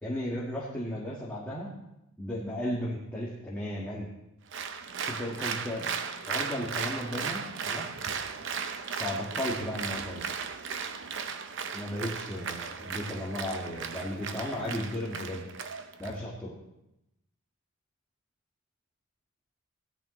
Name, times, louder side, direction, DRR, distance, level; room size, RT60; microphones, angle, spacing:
voice 1, 0.0-1.8 2.2-4.1 5.1-5.9 6.3-7.9 9.0-10.2 11.7-15.5 16.0-16.5, left 1 dB, 10° left, -7 dB, 1.7 m, -35 dB
Applause, 4.5-16.1, right 6 dB, 60° right, 0.7 m, -36 dB
17.0 x 10.5 x 3.1 m, 0.88 s
head